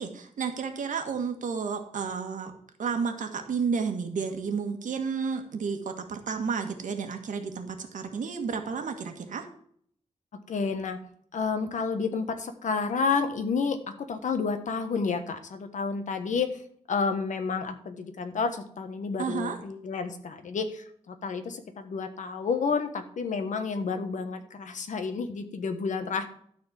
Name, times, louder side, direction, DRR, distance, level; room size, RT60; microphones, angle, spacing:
voice 1, 0.0-2.5 2.8-9.4 19.2-19.6, right 5 dB, 90° right, 5 dB, 1.6 m, -31 dB
voice 2, 10.5-11.0 11.3-13.8 14.1-16.6 16.9-26.2, left 5 dB, 75° left, 8 dB, 1.3 m, -30 dB
12.5 x 4.4 x 7.4 m, 0.62 s
wide cardioid pair, 145°, 13 cm